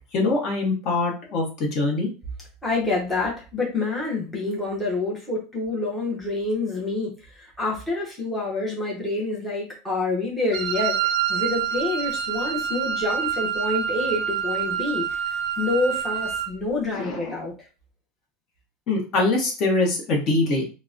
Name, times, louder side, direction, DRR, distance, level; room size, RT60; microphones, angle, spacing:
voice 1, 0.1-2.1 16.9-17.4 18.9-20.6, left 2 dB, 40° left, 0 dB, 0.9 m, -23 dB
voice 2, 2.6-11.0 11.3-17.5, left 3 dB, 5° left, -5 dB, 0.8 m, -27 dB
Wind instrument woodwind instrument, 10.5-16.6, right 9 dB, 45° right, 0.3 m, -27 dB
3.8 x 2.0 x 2.5 m, 0.33 s
supercardioid pair, 160°, 0 cm